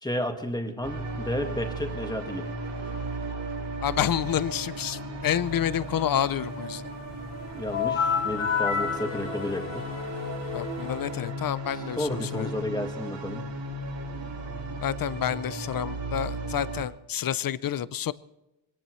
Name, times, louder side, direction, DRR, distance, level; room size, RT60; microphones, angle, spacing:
voice 1, 0.0-2.5 7.5-9.9 11.7-13.4, left 1 dB, 10° left, 4 dB, 1.7 m, -32 dB
sound 1, 0.8-16.8, right 2 dB, 60° right, 4.6 m, -36 dB
voice 2, 3.8-6.8 10.5-12.5 14.8-18.1, left 10 dB, 45° left, 18 dB, 0.5 m, -29 dB
sound 2, 7.7-11.3, left 7 dB, 85° left, 1.8 m, -30 dB
23.5 x 18.0 x 3.1 m, 0.94 s
wide cardioid pair, 150°, 48 cm